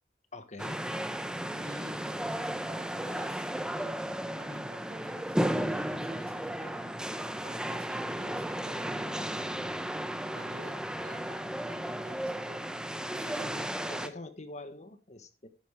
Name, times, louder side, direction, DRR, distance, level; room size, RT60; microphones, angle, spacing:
voice 1, 0.3-0.8 13.2-13.6 13.9-15.5, left 2 dB, 45° left, 1.3 m, -45 dB
sound 1, 0.6-14.1, right 1 dB, 5° right, 0.7 m, -34 dB
voice 2, 1.5-9.4 10.3-12.8 13.1-14.0, right 1 dB, 60° right, 2.5 m, -50 dB
11.0 x 8.7 x 3.5 m
head